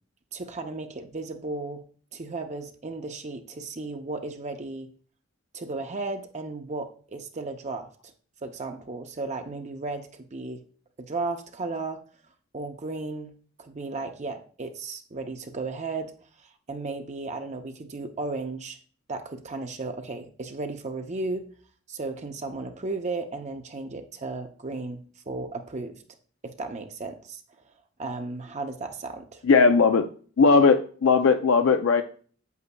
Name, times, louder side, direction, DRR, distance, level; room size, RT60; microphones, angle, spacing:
voice 1, 0.3-1.8 2.1-4.9 5.5-7.9 8.4-10.6 11.0-12.0 12.5-13.3 13.6-16.1 16.4-18.8 19.1-21.5 21.9-26.0 26.4-27.4 28.0-29.4, right 3 dB, 35° right, 6 dB, 0.6 m, -34 dB
voice 2, 29.4-30.0 30.4-32.0, left 4 dB, 90° left, 6 dB, 0.5 m, -18 dB
8.2 x 8.0 x 2.3 m, 0.44 s
head